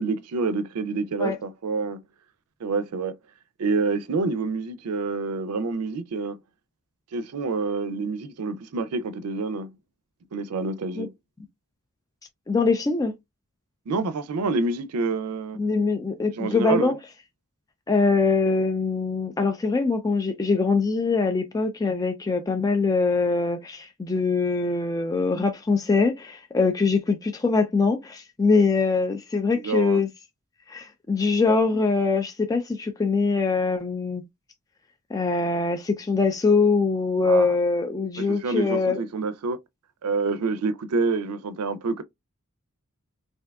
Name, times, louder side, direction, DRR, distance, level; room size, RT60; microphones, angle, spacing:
voice 1, 0.0-2.0 2.6-3.1 3.6-6.4 7.1-9.7 10.3-11.1 13.9-15.6 16.4-16.9 29.5-30.0 37.2-37.6 38.2-39.6 40.0-42.0, right 3 dB, 90° right, 0.4 m, -27 dB
voice 2, 12.5-13.1 15.6-17.0 17.9-30.1 30.7-34.2 35.1-39.0, left 4 dB, 15° left, 0.3 m, -23 dB
3.3 x 2.6 x 2.3 m
head